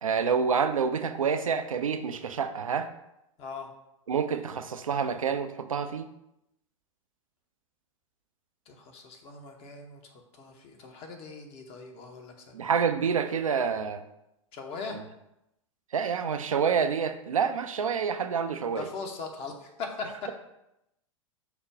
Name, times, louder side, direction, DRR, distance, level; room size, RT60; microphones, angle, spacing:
voice 1, 0.0-2.9 4.1-6.1 12.5-14.0 15.9-18.9, right 6 dB, 80° right, 9 dB, 0.4 m, -28 dB
voice 2, 3.4-3.7 8.7-10.0 10.3-12.7 14.5-15.0 18.7-20.3, left 4 dB, 35° left, 3 dB, 0.8 m, -40 dB
4.9 x 2.2 x 4.8 m, 0.84 s
figure-of-eight pair, 95°, 17 cm